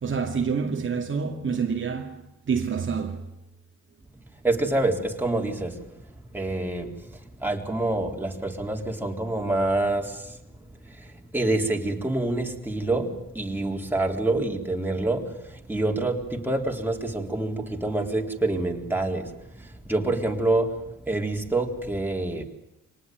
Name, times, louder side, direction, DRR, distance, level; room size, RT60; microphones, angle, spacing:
voice 1, 0.0-3.3, right 6 dB, 40° right, 2.4 m, -28 dB
voice 2, 4.4-5.8 6.3-6.9 7.4-10.4 11.0-22.4, right 2 dB, 5° right, 4.0 m, -27 dB
25.0 x 19.5 x 9.3 m
cardioid pair, 90°, 30 cm